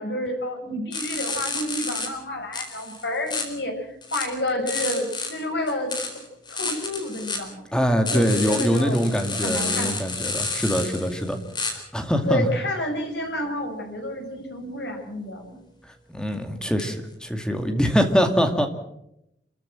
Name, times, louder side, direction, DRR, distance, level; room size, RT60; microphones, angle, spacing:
voice 1, 0.0-6.1 6.5-7.6 8.1-9.0 9.4-10.0 12.2-15.5, left 1 dB, 70° left, 3 dB, 6.2 m, -29 dB
sound 1, 0.9-2.1 2.5-3.4 4.0-5.3 5.7-7.4 8.1-11.7 16.8-16.9, left 4 dB, 25° left, 4.1 m, -30 dB
voice 2, 7.7-11.4 11.7-12.5 16.1-18.7, equal, 5° left, 5 dB, 2.0 m, -23 dB
27.5 x 14.5 x 7.6 m, 0.82 s
head